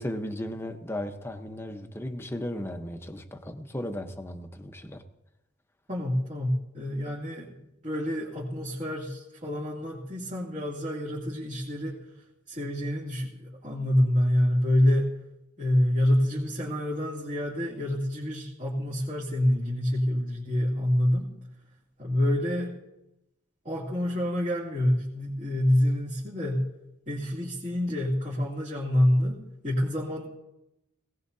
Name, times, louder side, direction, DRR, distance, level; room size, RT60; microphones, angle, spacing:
voice 1, 0.0-5.0, left 1 dB, 10° left, 6 dB, 0.9 m, -35 dB
voice 2, 5.9-12.0 12.5-15.1 15.6-21.3 22.0-22.8 23.6-26.7 27.1-30.2, left 1 dB, 40° right, -6 dB, 2.6 m, -27 dB
19.0 x 18.0 x 2.8 m, 0.90 s
head